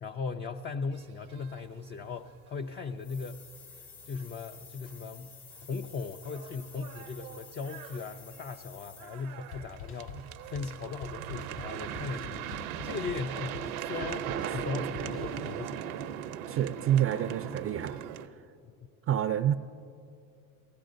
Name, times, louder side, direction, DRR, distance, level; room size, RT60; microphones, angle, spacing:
voice 1, 0.0-3.5 4.0-15.8 18.6-18.7, left 4 dB, 25° left, 6 dB, 0.4 m, -38 dB
sound 1, 1.1-1.8 2.0-2.1 2.4-2.6 3.0-3.1 4.9-5.0 5.6-5.7 6.0-18.3, right 10 dB, 80° right, 0.7 m, -39 dB
sound 2, 3.0-9.4, left 6 dB, 85° left, 1.4 m, -52 dB
sound 3, 9.5-15.9, left 6 dB, 60° left, 3.1 m, -46 dB
voice 2, 16.5-18.0 19.1-19.5, right 10 dB, 35° right, 11 dB, 0.4 m, -28 dB
19.5 x 16.0 x 2.6 m, 2.4 s
hypercardioid pair, 80°, 42 cm